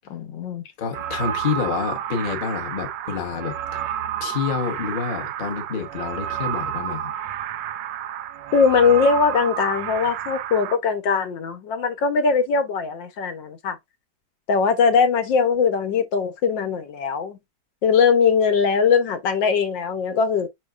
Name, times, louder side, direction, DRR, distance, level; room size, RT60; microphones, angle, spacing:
voice 1, 0.1-0.6 8.5-13.8 14.5-17.4 17.8-20.5, left 5 dB, 80° left, 1.6 m, -20 dB
voice 2, 0.8-3.6 4.2-7.1, left 6 dB, 35° left, 0.9 m, -28 dB
sound 1, 0.9-10.8, right 10 dB, 80° right, 1.2 m, -30 dB
5.8 x 3.8 x 2.4 m
omnidirectional pair, 2.0 m